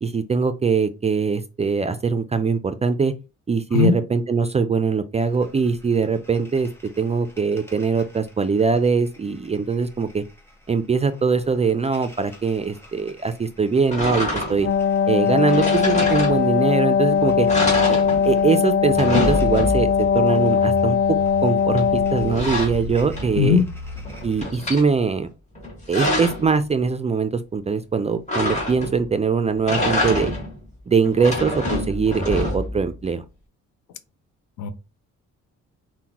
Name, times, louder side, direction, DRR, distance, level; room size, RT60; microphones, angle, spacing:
voice 1, 0.0-3.1 3.5-6.7 7.0-10.2 10.7-14.7 15.1-17.5 17.9-18.0 18.2-21.0 21.4-23.6 24.2-25.3 25.9-30.3 30.9-33.2, right 5 dB, 25° right, 0.3 m, -22 dB
sound 1, 5.2-24.4, right 2 dB, 10° left, 1.2 m, -40 dB
sound 2, 13.9-14.8 15.5-16.7 17.1-17.2 17.5-18.5 18.8-20.1 21.8-23.5 23.9-24.9 25.5-26.5 28.3-29.1 29.5-30.6 31.0-32.8, left 1 dB, 25° left, 1.8 m, -26 dB
Wind instrument woodwind instrument, 14.5-22.5, left 7 dB, 45° left, 0.4 m, -20 dB
voice 2, 23.4-23.7 34.6-34.7, left 7 dB, 85° left, 0.6 m, -18 dB
5.6 x 2.1 x 2.9 m
cardioid pair, 90°, 30 cm